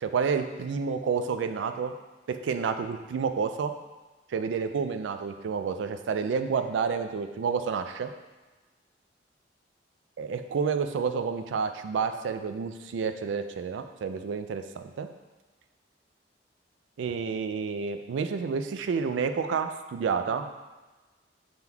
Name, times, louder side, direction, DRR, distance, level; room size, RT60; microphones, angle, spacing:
voice 1, 0.0-1.9 2.3-3.7 4.3-8.1 10.2-15.1 17.0-20.5, right 5 dB, 80° right, 8 dB, 0.3 m, -29 dB
5.9 x 3.5 x 2.3 m, 1.2 s
head